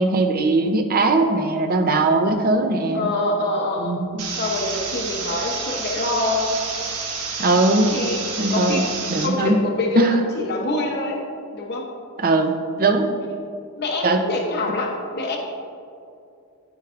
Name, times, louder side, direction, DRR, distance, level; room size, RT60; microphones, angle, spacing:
voice 1, 0.0-3.1 3.8-4.2 7.4-7.9 8.4-8.8 9.1-9.6 10.0-10.2 12.2-12.5 12.8-13.1 14.0-14.2, right 2 dB, 40° right, 5 dB, 0.6 m, -19 dB
voice 2, 2.9-3.9 4.4-6.5 7.9-8.2 8.5-8.8 9.2-10.1 10.3-11.2 11.5-11.9 13.8-15.4, left 2 dB, 50° left, 0 dB, 0.8 m, -25 dB
sound 1, 4.2-9.3, right 5 dB, 85° right, 1.2 m, -29 dB
13.0 x 4.6 x 2.5 m, 2.5 s
head